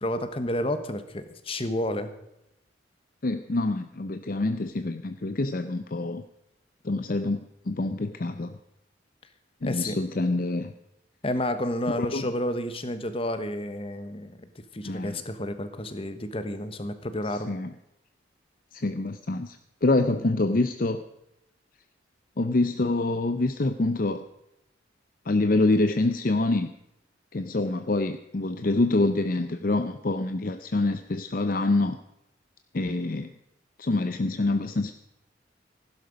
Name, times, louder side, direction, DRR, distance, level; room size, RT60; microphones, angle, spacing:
voice 1, 0.0-2.1 9.7-10.0 11.2-14.5 14.7-17.5, left 1 dB, 30° left, 10 dB, 1.1 m, -30 dB
voice 2, 3.2-6.2 6.8-8.6 9.6-10.7 12.0-12.3 14.8-15.2 17.3-17.7 18.7-21.0 22.4-24.2 25.3-26.7 27.3-32.0 32.7-33.3 33.8-34.9, left 2 dB, 45° left, 9 dB, 0.6 m, -26 dB
15.5 x 12.0 x 5.2 m, 0.83 s
head